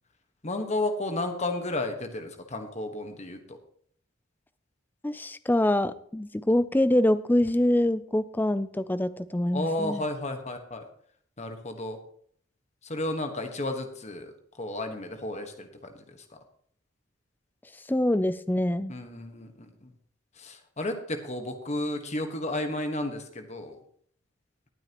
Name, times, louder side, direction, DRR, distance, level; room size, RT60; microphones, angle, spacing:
voice 1, 0.4-3.6 9.5-10.8 11.4-12.0 12.8-15.9 18.9-19.9 20.4-23.8, left 1 dB, 30° left, 6 dB, 1.3 m, -32 dB
voice 2, 5.0-10.0 17.9-18.9, left 1 dB, 10° left, 14 dB, 0.4 m, -25 dB
19.0 x 8.8 x 3.0 m, 0.62 s
head